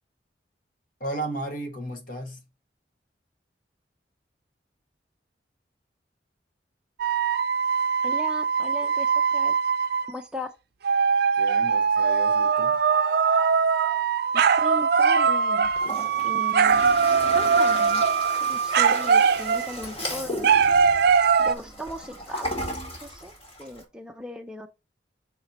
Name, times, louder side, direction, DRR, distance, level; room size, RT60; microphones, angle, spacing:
voice 1, 1.0-2.4 11.4-12.8, right 2 dB, 50° left, 1.8 m, -34 dB
sound 1, 7.0-10.1 10.8-19.8 20.4-21.5, right 6 dB, 60° right, 0.4 m, -21 dB
voice 2, 8.0-9.5 10.1-10.5 14.3-15.7 16.2-16.8 17.3-18.0 18.4-20.5 21.4-22.5 23.0-23.3 23.6-24.7, equal, 5° right, 0.5 m, -37 dB
Toilet flush, 15.6-23.8, equal, 35° left, 2.3 m, -35 dB
6.5 x 4.5 x 4.1 m
head